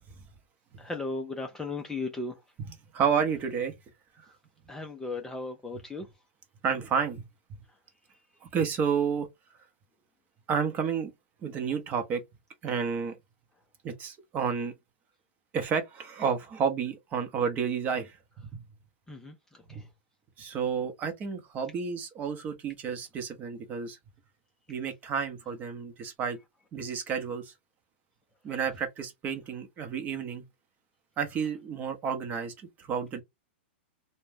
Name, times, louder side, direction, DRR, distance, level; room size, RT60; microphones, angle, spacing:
voice 1, 0.8-2.4 4.7-6.1 19.1-19.3 19.7-19.9, left 3 dB, 10° left, 0.4 m, -36 dB
voice 2, 2.9-3.7 6.6-7.2 8.5-9.3 10.5-11.1 11.4-12.2 12.6-13.1 13.8-14.7 15.5-18.6 19.7-19.8 20.4-24.0 24.7-26.4 26.7-27.5 28.4-30.4 31.2-32.5 32.8-33.2, right 6 dB, 25° right, 0.7 m, -30 dB
2.4 x 2.1 x 3.4 m
hypercardioid pair, 140°, 6 cm